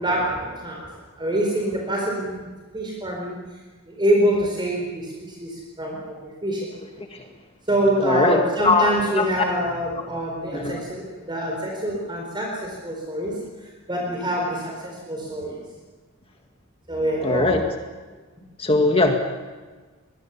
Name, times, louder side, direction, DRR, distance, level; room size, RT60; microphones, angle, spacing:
voice 1, 0.0-2.5 2.7-3.4 3.9-6.0 6.4-6.7 7.7-13.4 13.9-15.6 16.9-17.6, right 1 dB, 25° right, -1 dB, 4.3 m, -25 dB
voice 2, 8.0-9.3 10.5-10.8 17.2-17.6 18.6-19.2, left 3 dB, 30° left, 3 dB, 1.9 m, -20 dB
24.5 x 20.5 x 7.2 m, 1.4 s
head